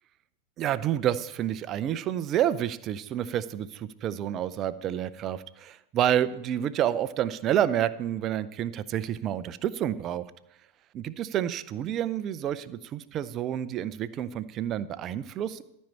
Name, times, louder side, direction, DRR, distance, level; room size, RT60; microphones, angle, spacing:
voice 1, 0.6-10.3 10.9-15.6, right 10 dB, 30° right, 15 dB, 0.5 m, -29 dB
13.5 x 5.4 x 7.2 m, 0.85 s
figure-of-eight pair, 90°, 0 cm